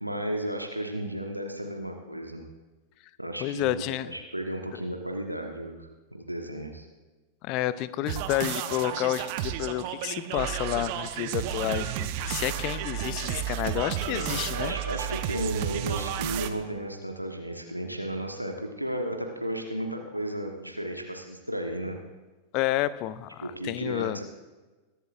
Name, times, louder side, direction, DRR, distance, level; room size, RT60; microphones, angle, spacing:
voice 1, 0.0-2.5 3.2-6.9 14.0-22.0 23.4-24.2, right 1 dB, 90° right, 3 dB, 1.2 m, -34 dB
voice 2, 3.4-4.1 7.4-14.7 22.5-24.2, left 14 dB, 40° left, 16 dB, 0.6 m, -30 dB
sound 1, 8.1-16.5, right 11 dB, 45° right, 0.8 m, -32 dB
21.5 x 11.5 x 2.6 m, 1.2 s
figure-of-eight pair, 90°, 0 cm